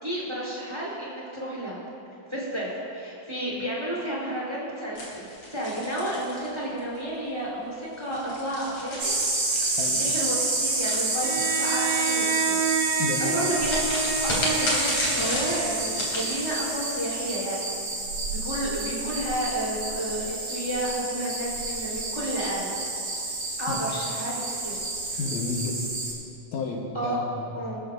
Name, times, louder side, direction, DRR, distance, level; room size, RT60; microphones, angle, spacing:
voice 1, 0.0-1.8 2.3-9.1 9.9-12.6 13.3-13.8 14.2-14.9 15.2-17.6 18.3-22.7 23.6-24.8 25.1-25.2 26.9-27.2 27.5-27.8, right 1 dB, 10° right, -5 dB, 3.4 m, -31 dB
sound 1, 5.0-7.0 7.9-11.7 13.6-16.3, left 1 dB, 50° left, 4.3 m, -32 dB
sound 2, 9.0-26.1, right 2 dB, 55° right, 5.0 m, -29 dB
Bowed string instrument, 11.2-16.2, right 7 dB, 75° right, 1.4 m, -30 dB
voice 2, 13.0-13.5 23.7-23.8 25.2-25.8 26.5-27.5, left 4 dB, 70° left, -1 dB, 2.5 m, -31 dB
24.5 x 13.5 x 2.6 m, 2.6 s
omnidirectional pair, 3.6 m